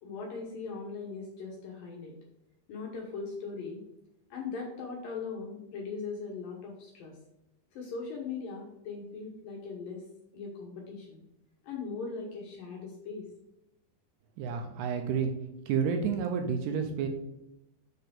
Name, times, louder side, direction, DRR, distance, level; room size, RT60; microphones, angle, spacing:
voice 1, 0.0-2.2 2.7-3.8 4.3-7.2 7.7-10.0 10.3-11.2 11.6-13.3, left 4 dB, 70° left, -1 dB, 2.4 m, -39 dB
voice 2, 14.4-15.3 15.7-17.1, right 6 dB, 80° right, 5 dB, 2.6 m, -30 dB
6.6 x 4.7 x 5.1 m, 0.87 s
omnidirectional pair, 5.0 m